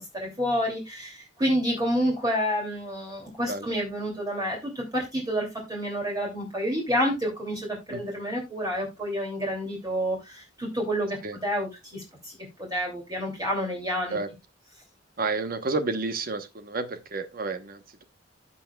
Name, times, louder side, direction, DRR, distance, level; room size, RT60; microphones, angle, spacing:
voice 1, 0.0-14.2, equal, 20° right, 2.7 m, -29 dB
voice 2, 15.2-18.0, right 3 dB, 50° right, 1.0 m, -31 dB
14.5 x 5.6 x 2.3 m
head